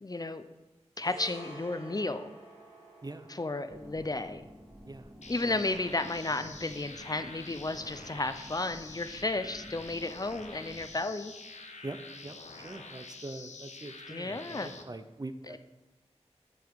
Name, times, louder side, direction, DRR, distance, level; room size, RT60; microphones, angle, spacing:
voice 1, 0.0-0.5 1.0-2.3 3.3-4.5 5.3-11.3 14.1-14.7, left 2 dB, 35° left, 10 dB, 0.6 m, -33 dB
sound 1, 0.9-9.4 9.7-9.9, right 1 dB, 70° right, 3.4 m, -53 dB
sound 2, 3.7-11.0, equal, ahead, 1.1 m, -52 dB
sound 3, 5.2-14.8, left 3 dB, 85° left, 0.8 m, -47 dB
voice 2, 12.6-15.6, right 2 dB, 35° right, 9 dB, 0.6 m, -43 dB
8.3 x 7.1 x 4.7 m, 1.1 s
wide cardioid pair, 50°, 12 cm